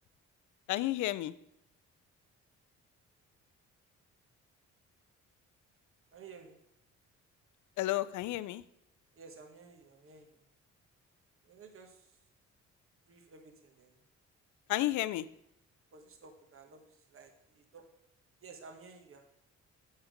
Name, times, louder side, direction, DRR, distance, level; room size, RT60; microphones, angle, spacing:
voice 1, 0.7-1.3 7.8-8.6 14.7-15.3, left 15 dB, 75° left, 16 dB, 0.5 m, -32 dB
voice 2, 6.1-6.6 9.1-10.4 11.4-12.2 13.1-14.0 15.9-17.9 18.4-19.2, right 4 dB, 45° right, 4 dB, 1.4 m, -54 dB
7.3 x 6.7 x 5.0 m, 0.79 s
cardioid pair, 90°, 30 cm